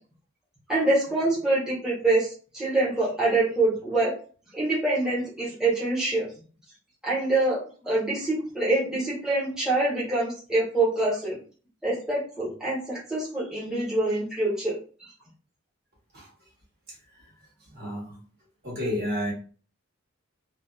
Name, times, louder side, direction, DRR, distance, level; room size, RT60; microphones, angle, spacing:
voice 1, 0.7-4.1 4.5-6.3 7.0-11.4 11.8-14.8, right 2 dB, 5° right, -9 dB, 0.8 m, -25 dB
voice 2, 17.6-18.2 18.6-19.3, equal, 50° right, -4 dB, 1.2 m, -31 dB
2.6 x 2.3 x 2.3 m, 0.40 s
head